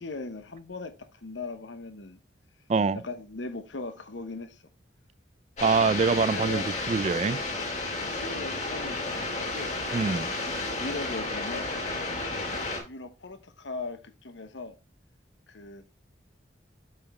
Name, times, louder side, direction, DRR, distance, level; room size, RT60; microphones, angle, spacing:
voice 1, 0.0-2.2 2.9-4.6 6.3-6.7 7.9-9.7 10.8-11.7 12.8-14.7 15.5-15.9, left 3 dB, 85° left, 1.0 m, -39 dB
sound 1, 5.6-12.8, left 2 dB, 40° left, 3.6 m, -32 dB
voice 2, 5.6-7.4 9.9-10.3, right 5 dB, 35° right, 0.3 m, -24 dB
7.8 x 5.9 x 3.2 m
head